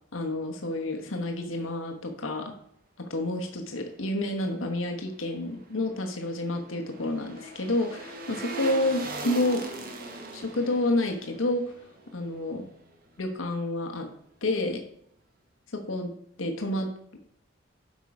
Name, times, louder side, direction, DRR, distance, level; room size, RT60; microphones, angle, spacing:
voice 1, 0.1-2.5 3.0-9.6 10.3-11.6 12.1-12.6 13.2-14.1 14.4-14.8 15.7-16.1 16.4-16.9, left 1 dB, 85° left, 3 dB, 1.2 m, -29 dB
sound 1, 5.7-13.0 13.3-13.4, right 1 dB, 45° right, 1.3 m, -40 dB
8.3 x 5.5 x 4.8 m, 0.69 s
head